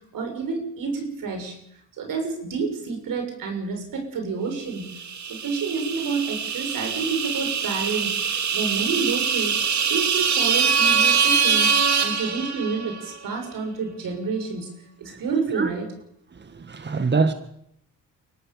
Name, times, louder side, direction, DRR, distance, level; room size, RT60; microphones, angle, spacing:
voice 1, 0.1-1.6 2.0-4.8 5.3-11.7 12.0-14.7 15.0-15.9, right 4 dB, 75° right, 6.6 m, -29 dB
sound 1, 5.0-13.0, right 6 dB, 55° right, 2.2 m, -23 dB
voice 2, 16.6-17.3, right 4 dB, 30° right, 1.6 m, -23 dB
24.0 x 17.5 x 7.1 m
cardioid pair, 75°, 34 cm